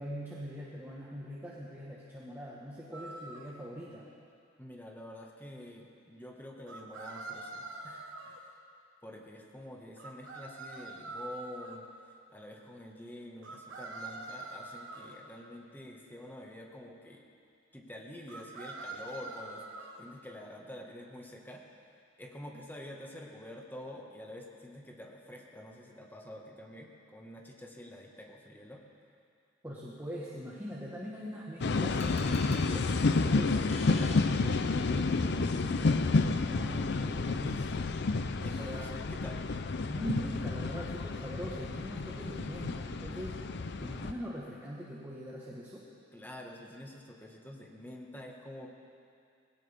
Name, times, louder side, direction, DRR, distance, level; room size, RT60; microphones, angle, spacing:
voice 1, 0.0-4.1 29.6-37.9 38.4-38.9 39.9-45.8, equal, 10° right, -6 dB, 1.5 m, -42 dB
sound 1, 2.9-3.5 6.7-8.4 10.0-11.8 13.4-15.2 18.3-20.0, right 2 dB, 85° right, 1.4 m, -44 dB
voice 2, 4.6-8.5 9.0-11.8 12.3-17.2 17.7-19.6 20.0-21.6 22.2-28.8 38.4-39.5 46.1-48.7, left 1 dB, 10° left, -1 dB, 1.7 m, -47 dB
sound 2, 31.6-44.1, left 3 dB, 60° left, 0.6 m, -30 dB
sound 3, 32.0-35.0, left 3 dB, 35° left, 1.5 m, -48 dB
20.0 x 17.0 x 3.6 m, 2.4 s
head